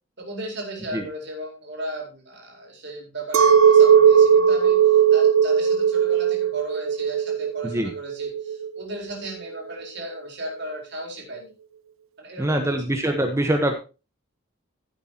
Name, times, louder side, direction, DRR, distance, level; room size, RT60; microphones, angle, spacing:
voice 1, 0.2-11.5 12.2-12.8, right 1 dB, 55° right, 0 dB, 4.3 m, -36 dB
Chink clink, 3.3-8.8, right 7 dB, 85° right, 0.9 m, -17 dB
voice 2, 12.4-13.8, right 1 dB, 15° right, 5 dB, 1.1 m, -23 dB
16.0 x 8.1 x 2.9 m, 0.30 s
head